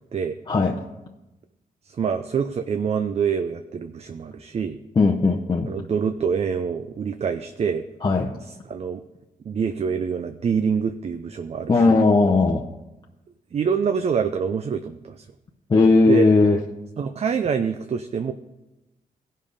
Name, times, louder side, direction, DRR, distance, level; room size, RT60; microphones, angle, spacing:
voice 1, 0.5-0.8 5.0-5.7 8.0-8.3 11.7-12.6 15.7-16.6, left 3 dB, 30° left, -1 dB, 0.7 m, -17 dB
voice 2, 1.9-4.8 5.7-7.8 8.4-9.0 9.4-12.0 13.5-15.2 16.1-16.3 17.0-18.3, right 6 dB, 45° right, 8 dB, 0.5 m, -26 dB
16.0 x 5.5 x 5.0 m, 0.99 s
cardioid pair, 105°, 15 cm